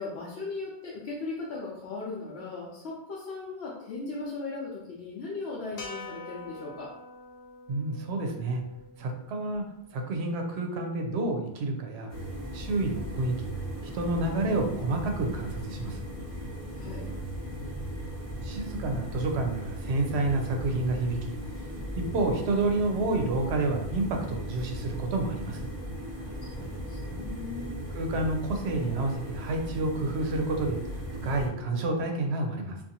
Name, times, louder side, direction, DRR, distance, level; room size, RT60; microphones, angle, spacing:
voice 1, 0.0-6.9 16.7-17.1 26.4-27.8, left 3 dB, 80° left, -5 dB, 0.8 m, -38 dB
sound 1, 5.8-10.1, left 2 dB, 50° left, 0.5 m, -46 dB
voice 2, 7.7-8.6 9.0-9.7 9.9-12.1 12.5-13.5 13.8-16.1 18.4-21.7 21.9-25.7 27.9-32.8, right 2 dB, 85° right, 3 dB, 0.8 m, -29 dB
sound 2, 12.1-31.5, equal, 20° right, 0.5 m, -37 dB
2.6 x 2.3 x 2.7 m, 0.84 s
omnidirectional pair, 1.1 m